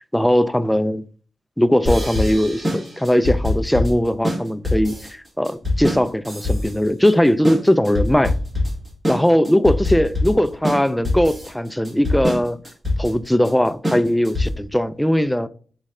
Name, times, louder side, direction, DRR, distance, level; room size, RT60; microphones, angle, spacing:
voice 1, 0.1-1.0 1.6-8.3 9.1-12.6 13.0-15.5, equal, 5° left, 0.3 m, -19 dB
sound 1, 1.8-14.7, left 1 dB, 25° right, 1.7 m, -24 dB
4.1 x 3.2 x 3.6 m
wide cardioid pair, 130°, 0 cm